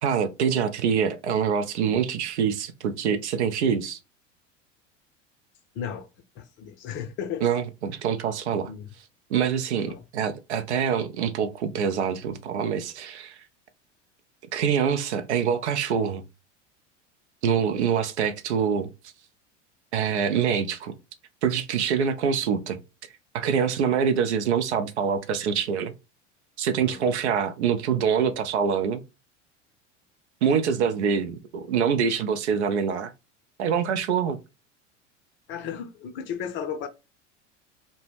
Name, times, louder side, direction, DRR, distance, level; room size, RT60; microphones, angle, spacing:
voice 1, 0.0-4.0 7.4-8.7 9.3-13.4 14.5-16.2 17.4-18.9 19.9-20.9 21.4-22.8 23.3-25.9 26.6-29.0 30.4-33.1 33.6-34.4, right 7 dB, 65° right, 0.5 m, -25 dB
voice 2, 5.7-6.1 6.4-7.4 8.7-8.9 9.9-10.0 26.8-27.1 35.5-36.9, left 8 dB, 35° left, 0.5 m, -34 dB
2.1 x 2.0 x 3.1 m
figure-of-eight pair, 75°, 37 cm